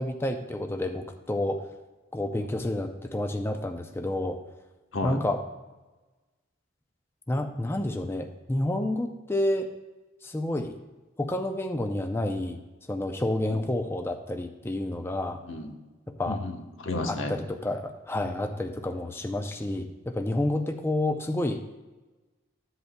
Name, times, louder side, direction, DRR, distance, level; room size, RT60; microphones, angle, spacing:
voice 1, 0.0-1.6 2.1-4.4 5.0-5.4 7.3-9.7 10.2-10.8 11.2-12.6 12.9-15.4 16.2-16.4 17.1-21.6, left 1 dB, 10° left, 4 dB, 0.5 m, -29 dB
voice 2, 15.4-15.8 16.3-17.3 18.2-18.5, left 2 dB, 85° left, 3 dB, 1.1 m, -33 dB
14.0 x 8.0 x 2.2 m, 1.2 s
head